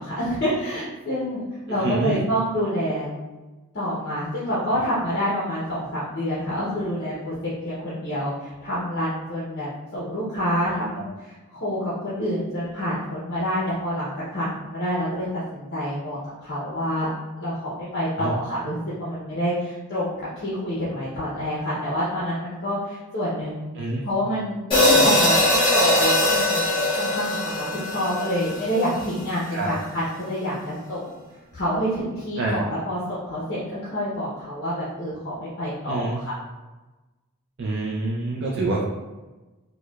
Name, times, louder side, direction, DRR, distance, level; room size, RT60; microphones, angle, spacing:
voice 1, 0.0-3.1 3.7-7.4 7.6-15.3 15.5-17.1 17.4-23.7 24.0-31.1 31.5-36.3, equal, 50° left, -9 dB, 0.7 m, -27 dB
voice 2, 1.8-2.2 18.2-18.4 23.8-24.0 29.5-29.7 32.4-32.6 35.9-36.2 37.6-38.8, right 2 dB, 50° right, -4 dB, 0.4 m, -26 dB
sound 1, 24.7-29.1, left 1 dB, 25° left, 1.2 m, -21 dB
4.6 x 2.2 x 2.3 m, 1.2 s
head